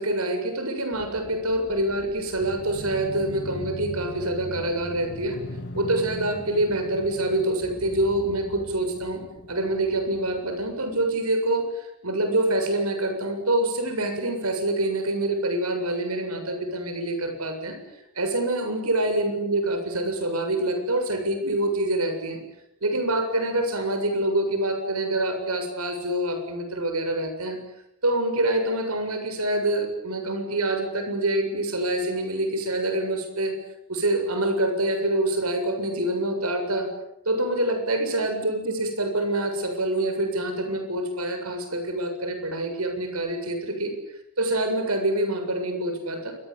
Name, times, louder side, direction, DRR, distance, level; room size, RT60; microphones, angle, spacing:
voice 1, 0.0-5.4 5.7-17.8 18.2-22.4 22.8-27.6 28.0-33.5 33.9-36.9 37.3-43.9 44.4-46.3, right 1 dB, 90° right, 6 dB, 7.2 m, -26 dB
sound 1, 0.9-11.1, left 1 dB, 55° left, 2.5 m, -40 dB
28.0 x 24.0 x 8.8 m, 0.84 s
head